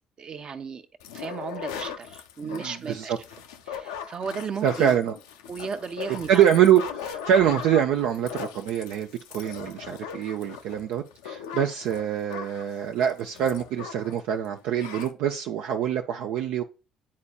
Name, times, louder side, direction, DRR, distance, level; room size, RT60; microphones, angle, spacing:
voice 1, 0.2-0.8 1.1-3.1 3.7-5.0 5.5-6.4, right 5 dB, 45° right, 0.8 m, -35 dB
sound 1, 1.0-14.2 14.4-14.5 14.8-15.1, left 7 dB, 85° left, 0.5 m, -39 dB
voice 2, 2.4-3.2 4.6-5.1 6.3-16.6, right 9 dB, 70° right, 0.4 m, -24 dB
9.6 x 4.2 x 2.3 m
hypercardioid pair, 55°, 2 cm